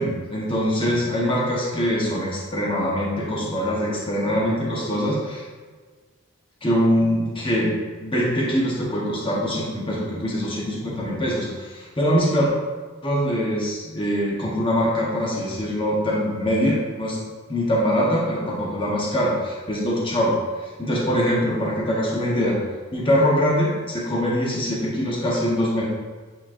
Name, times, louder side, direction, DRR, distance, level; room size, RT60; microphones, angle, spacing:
voice 1, 0.0-5.4 6.6-7.7 8.0-12.5 13.0-17.2 17.5-20.4 20.8-22.6 22.9-25.8, equal, 25° left, -4 dB, 1.0 m, -23 dB
8.7 x 4.3 x 2.5 m, 1.4 s
head